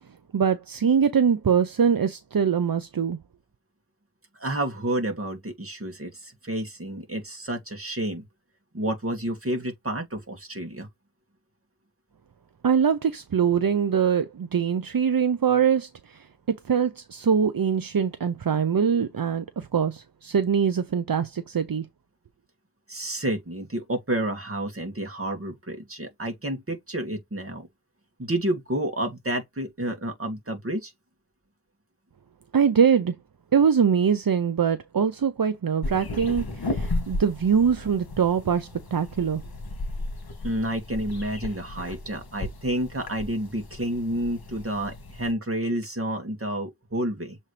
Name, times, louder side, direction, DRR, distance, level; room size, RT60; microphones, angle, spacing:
voice 1, 0.3-3.2 12.6-16.3 16.7-21.9 32.5-33.2 33.5-39.4, right 7 dB, 70° right, 0.8 m, -23 dB
voice 2, 4.3-8.3 8.7-10.9 22.9-27.7 28.2-30.9 40.4-47.4, right 1 dB, 40° right, 2.3 m, -30 dB
sound 1, 35.8-45.3, left 2 dB, 80° left, 1.8 m, -35 dB
7.1 x 4.2 x 3.4 m
wide cardioid pair, 55°, 36 cm